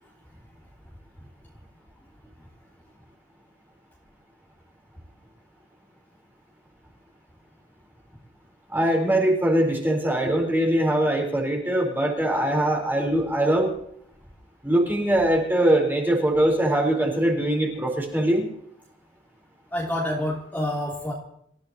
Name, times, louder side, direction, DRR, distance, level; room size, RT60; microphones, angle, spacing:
voice 1, 8.7-13.7 14.6-18.5, right 1 dB, 10° right, 0 dB, 3.9 m, -22 dB
voice 2, 19.7-21.1, left 1 dB, 10° left, -4 dB, 3.0 m, -27 dB
27.5 x 15.5 x 2.9 m, 0.69 s
head